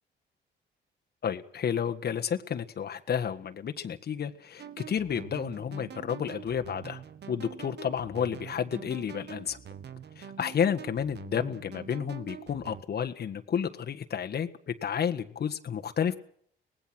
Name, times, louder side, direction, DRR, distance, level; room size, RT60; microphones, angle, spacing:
voice 1, 1.2-9.6 10.1-16.2, left 8 dB, 55° left, 6 dB, 1.7 m, -31 dB
sound 1, 4.6-12.8, right 8 dB, 60° right, 1.7 m, -45 dB
24.5 x 19.0 x 6.2 m, 0.62 s
cardioid pair, 90°, 20 cm